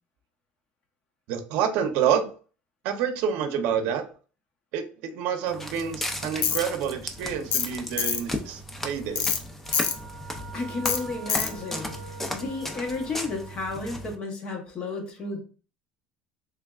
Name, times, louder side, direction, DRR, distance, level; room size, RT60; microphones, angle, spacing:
voice 1, 1.3-2.3 2.8-4.0 4.7-9.3, right 8 dB, 65° right, 7 dB, 0.6 m, -28 dB
Walk footsteps, 5.5-14.2, left 1 dB, 10° left, 0.5 m, -36 dB
Tools, 6.4-6.6 7.5-7.7 8.0-8.2 9.2-9.4 9.7-10.0 10.9-11.0 11.3-11.5, left 7 dB, 60° left, 0.5 m, -25 dB
sound 1, 9.6-14.1, right 4 dB, 35° right, 0.9 m, -45 dB
voice 2, 10.5-15.4, left 3 dB, 35° left, 3 dB, 0.9 m, -33 dB
3.5 x 3.3 x 2.3 m, 0.39 s
cardioid pair, 155°, 3 cm